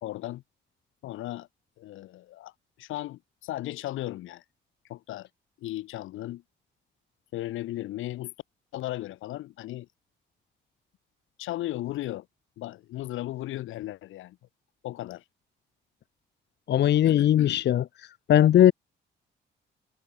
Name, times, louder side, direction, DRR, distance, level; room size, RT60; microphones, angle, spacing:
voice 1, 0.0-0.4 1.0-1.5 1.8-2.5 2.8-4.4 4.9-5.3 5.6-6.4 7.3-8.3 8.7-9.9 11.4-12.3 12.6-14.4 14.8-15.2 17.0-17.6, left 15 dB, 85° left, 2.2 m, -36 dB
voice 2, 16.7-17.8 18.3-18.7, left 11 dB, 60° left, 0.7 m, -19 dB
cardioid pair, 90°, 20 cm